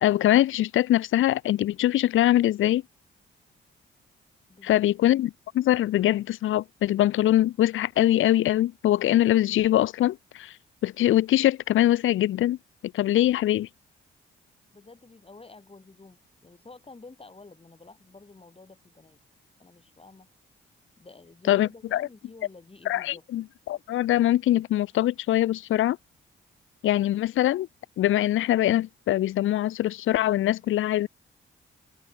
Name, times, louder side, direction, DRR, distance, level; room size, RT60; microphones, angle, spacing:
voice 1, 0.0-2.8 4.6-10.6 10.8-12.6 12.9-13.7 21.5-22.1 22.9-26.0 26.8-27.7 28.0-31.1, left 13 dB, 70° left, 0.6 m, -23 dB
voice 2, 14.7-19.2 19.6-20.3 21.0-23.3, left 3 dB, 25° left, 7.0 m, -49 dB
cardioid pair, 75°, 21 cm